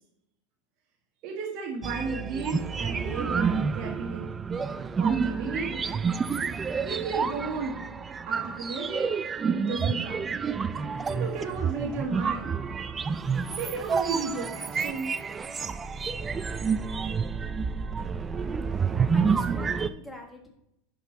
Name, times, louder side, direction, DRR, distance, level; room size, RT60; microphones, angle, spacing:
voice 1, 1.2-4.3 5.0-5.7 6.8-7.8 8.3-9.1 9.5-10.3 11.1-12.5 13.6-15.1, right 4 dB, 40° right, -2 dB, 1.5 m, -34 dB
sound 1, 1.8-19.9, right 5 dB, 15° right, 0.3 m, -29 dB
voice 2, 18.7-20.5, left 1 dB, 5° left, 2 dB, 1.5 m, -45 dB
11.0 x 5.1 x 3.9 m, 0.78 s
supercardioid pair, 160°, 0 cm